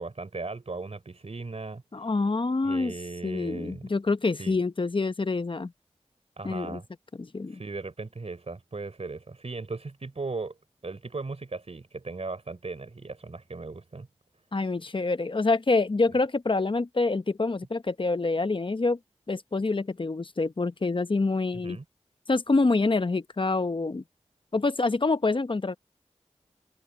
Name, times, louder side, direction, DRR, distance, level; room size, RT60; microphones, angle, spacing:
voice 1, 0.0-2.1 2.6-3.9 4.4-4.6 6.4-6.9 7.5-10.6 10.8-14.1 21.6-21.8, right 3 dB, 65° right, 3.8 m, -37 dB
voice 2, 1.9-2.9 3.2-5.7 6.4-6.8 7.2-7.6 14.5-19.0 19.3-21.8 22.3-24.0 24.5-25.8, left 3 dB, 45° left, 0.9 m, -26 dB
cardioid pair, 45°, 12 cm